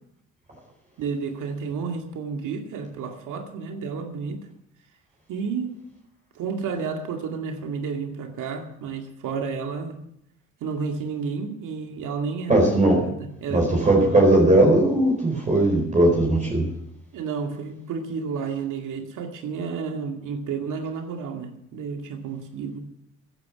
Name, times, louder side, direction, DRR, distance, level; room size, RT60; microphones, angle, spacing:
voice 1, 1.0-4.4 5.3-5.8 6.4-10.0 10.6-12.7 13.1-13.9 17.1-22.8, right 5 dB, 70° right, 4 dB, 2.3 m, -31 dB
voice 2, 12.5-13.0 13.5-16.7, right 1 dB, 25° right, -1 dB, 4.5 m, -18 dB
14.5 x 10.5 x 6.1 m, 0.77 s
cardioid pair, 95°, 32 cm